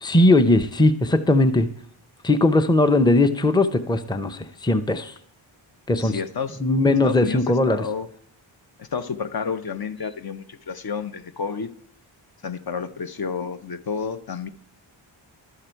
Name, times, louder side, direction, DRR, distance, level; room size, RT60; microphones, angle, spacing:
voice 1, 0.0-1.7 2.2-5.1 5.9-6.2 6.6-7.8, left 2 dB, 10° left, 10 dB, 0.6 m, -19 dB
voice 2, 6.0-6.6 7.0-8.1 8.8-11.7 12.4-14.5, left 6 dB, 50° left, 10 dB, 0.7 m, -30 dB
11.5 x 6.6 x 4.5 m, 0.64 s
cardioid pair, 60°, 48 cm